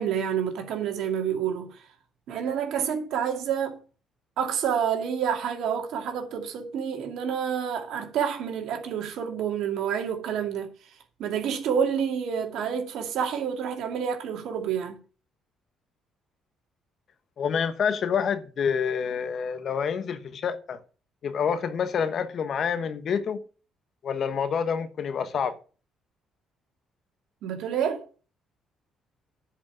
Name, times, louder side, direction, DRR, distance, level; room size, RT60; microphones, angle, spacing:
voice 1, 0.0-1.8 2.3-3.8 4.4-10.7 11.2-15.0 27.4-28.1, right 8 dB, 75° right, 2.3 m, -28 dB
voice 2, 17.4-20.8 21.2-23.4 24.0-25.6, left 7 dB, 55° left, 1.3 m, -27 dB
10.0 x 5.2 x 7.6 m
supercardioid pair, 70°, 0 cm